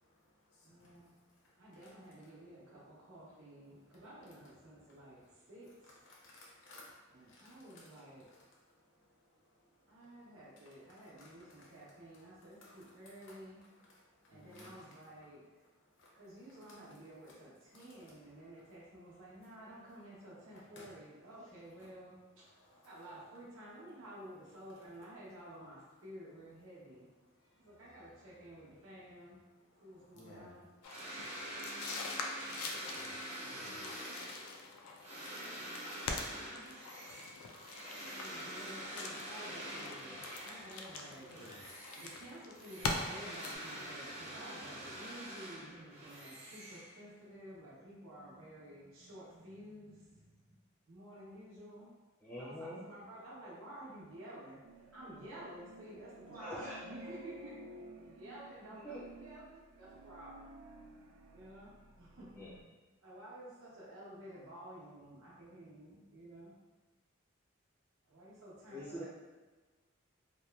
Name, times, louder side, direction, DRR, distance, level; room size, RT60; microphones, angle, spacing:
voice 1, 0.1-1.1 1.4-1.5 1.8-1.9 6.1-7.9 8.8-9.2 9.5-10.0 10.6-10.7 11.2-11.3 11.6-11.7 12.6-12.9 13.3-13.4 13.9-14.9 16.0-16.2 17.7-17.9 20.5-20.9 21.8-21.9 22.6-22.9 27.4-27.7 29.7-30.6 31.0-31.3 31.6-34.0 40.9-41.9, left 1 dB, 65° left, -4 dB, 0.7 m, -59 dB
voice 2, 0.6-1.1 1.6-6.0 7.1-8.3 9.9-13.6 14.3-15.4 16.1-22.5 22.8-27.1 27.6-29.4 29.8-30.7 31.3-31.5 36.3-36.8 38.1-41.6 41.9-50.6 50.9-51.9 52.4-57.5 58.0-60.5 61.3-62.5 63.0-66.5 68.0-69.0, right 1 dB, 70° right, -8 dB, 0.8 m, -52 dB
sound 1, 30.8-43.6, left 3 dB, 85° left, 0.3 m, -44 dB
sound 2, 30.8-40.9 41.3-47.3, right 1 dB, 30° right, 0.6 m, -46 dB
voice 3, 52.2-52.9 56.3-56.8 57.1-57.2 58.6-59.0 62.4-62.6 68.7-69.0, equal, 10° left, -8 dB, 0.4 m, -45 dB
sound 3, 54.6-62.6, right 2 dB, 85° right, 0.3 m, -54 dB
2.9 x 2.2 x 2.2 m, 1.3 s
head